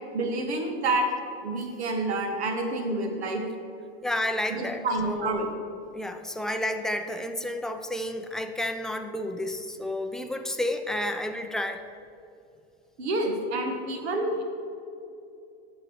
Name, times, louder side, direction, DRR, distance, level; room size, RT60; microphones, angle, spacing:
voice 1, 0.1-1.1 1.4-3.4 4.5-5.5 13.0-14.4, right 2 dB, 85° right, 4 dB, 1.5 m, -28 dB
voice 2, 4.0-5.4 5.9-11.8, left 1 dB, ahead, 6 dB, 0.3 m, -31 dB
9.3 x 6.4 x 4.6 m, 2.6 s
hypercardioid pair, 115°, 32 cm